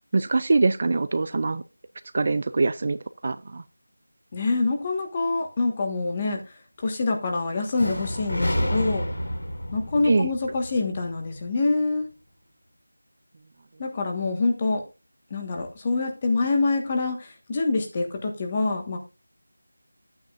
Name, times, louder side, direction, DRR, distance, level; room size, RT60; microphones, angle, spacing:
voice 1, 0.1-1.6 2.1-3.6 10.0-10.3, right 3 dB, 35° right, 0.4 m, -23 dB
voice 2, 4.3-6.4 6.8-9.1 9.7-12.1 13.8-14.8 15.3-19.0, left 3 dB, 20° left, 1.4 m, -25 dB
sound 1, 7.8-11.7, equal, 70° left, 3.7 m, -30 dB
11.5 x 8.9 x 2.4 m
figure-of-eight pair, 175°, 0 cm